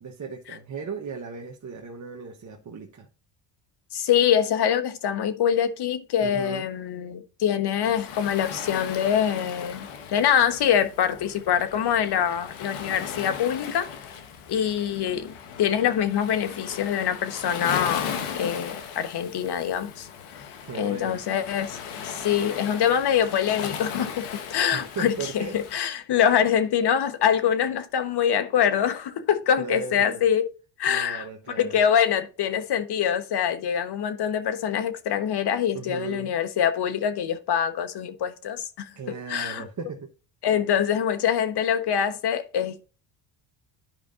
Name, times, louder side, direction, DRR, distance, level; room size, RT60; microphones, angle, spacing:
voice 1, 0.0-3.1 6.2-6.7 20.6-21.2 24.7-25.6 29.6-30.2 30.9-31.8 35.7-36.3 38.9-40.1, right 5 dB, 35° right, 1.3 m, -36 dB
voice 2, 3.9-13.9 14.5-20.1 20.7-21.8 22.0-30.4 30.8-31.3 31.6-38.9 39.3-39.6 40.4-42.8, left 9 dB, 50° left, 1.3 m, -24 dB
Waves surf, 7.8-25.8, left 7 dB, 75° left, 1.5 m, -37 dB
12.0 x 5.0 x 2.6 m
supercardioid pair, 75°, 50 cm